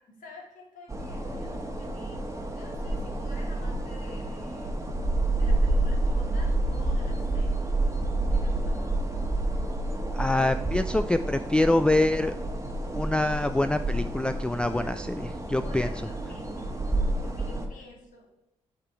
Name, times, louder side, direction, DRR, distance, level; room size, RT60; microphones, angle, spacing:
voice 1, 0.1-2.2 2.5-4.8 5.4-7.8 8.3-8.9 14.7-15.0 15.5-18.3, left 2 dB, 70° left, -1 dB, 2.0 m, -49 dB
sound 1, 0.9-17.7, right 2 dB, 20° right, 1.3 m, -29 dB
voice 2, 10.1-12.3 12.9-15.9, left 2 dB, 5° left, 10 dB, 0.3 m, -25 dB
7.9 x 4.1 x 4.6 m, 0.88 s
hypercardioid pair, 45°, 14 cm